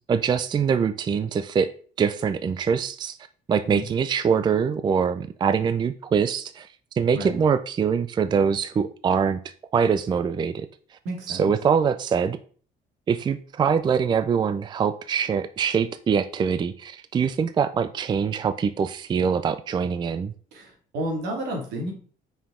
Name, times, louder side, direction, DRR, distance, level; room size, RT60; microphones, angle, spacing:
voice 1, 0.0-1.7 2.0-3.2 3.5-6.7 7.0-9.4 9.7-10.7 11.3-12.4 13.1-20.3, right 6 dB, 25° right, 12 dB, 0.4 m, -23 dB
voice 2, 11.0-11.5 20.5-21.9, right 1 dB, 85° right, 1 dB, 2.3 m, -31 dB
5.6 x 4.7 x 3.7 m, 0.42 s
cardioid pair, 110°, 17 cm